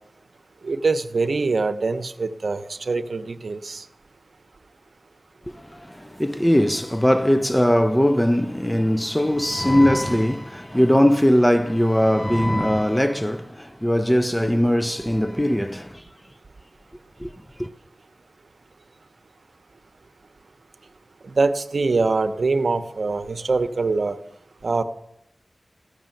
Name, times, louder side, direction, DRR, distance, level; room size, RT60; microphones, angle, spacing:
voice 1, 0.6-3.8 21.2-24.2 24.6-24.8, right 3 dB, 70° right, 0.8 m, -23 dB
voice 2, 5.5-16.0 17.2-17.3 17.6-17.7, equal, 10° left, 0.6 m, -20 dB
15.0 x 6.8 x 9.0 m
wide cardioid pair, 65°, 0 cm